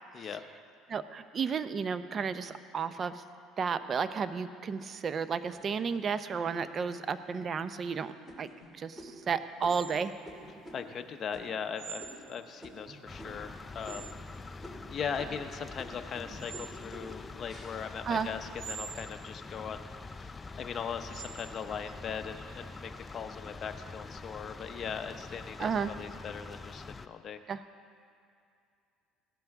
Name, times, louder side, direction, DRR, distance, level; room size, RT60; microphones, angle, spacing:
voice 1, 0.9-3.2 3.6-8.5 8.7-10.1 18.1-18.3 25.6-25.9 27.5-27.6, right 6 dB, 35° right, 12 dB, 0.6 m, -32 dB
sound 1, 5.4-6.3 6.9-7.0 7.5-7.8 8.3-13.6 13.8-14.3 14.6-18.9 19.4-20.0, equal, ahead, 2.6 m, -50 dB
sound 2, 9.7-23.1, right 7 dB, 65° right, 1.1 m, -49 dB
voice 2, 10.7-14.1 14.4-19.9 20.2-27.4, left 7 dB, 40° left, 7 dB, 0.8 m, -39 dB
sound 3, 13.1-27.1, left 3 dB, 20° left, 0.4 m, -45 dB
18.0 x 12.0 x 3.6 m, 2.4 s
supercardioid pair, 110°, 0 cm